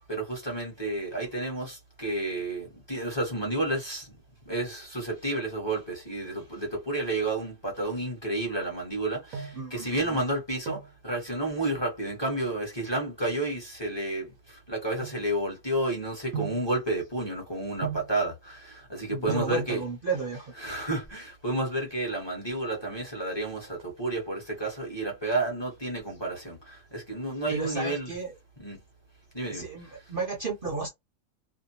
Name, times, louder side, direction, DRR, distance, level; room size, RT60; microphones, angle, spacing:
voice 1, 0.1-4.1 4.5-14.3 14.7-19.8 20.6-28.1 28.6-28.8 29.3-29.6, right 2 dB, 20° left, 1.0 m, -31 dB
sound 1, 9.1-9.7 10.4-11.0 12.2-12.6 13.3-15.7 16.3-16.7 17.8-18.2 19.0-19.1 19.3-19.6 20.7-21.3 21.6-21.7 21.9-22.0 22.4-22.8 23.1-24.2 24.6-25.0 25.4-26.5 26.8-26.9, right 8 dB, 80° right, 1.1 m, -40 dB
voice 2, 9.5-10.2 19.1-20.5 27.5-28.3 29.5-30.9, right 4 dB, 45° right, 0.8 m, -33 dB
2.6 x 2.2 x 2.8 m
omnidirectional pair, 1.5 m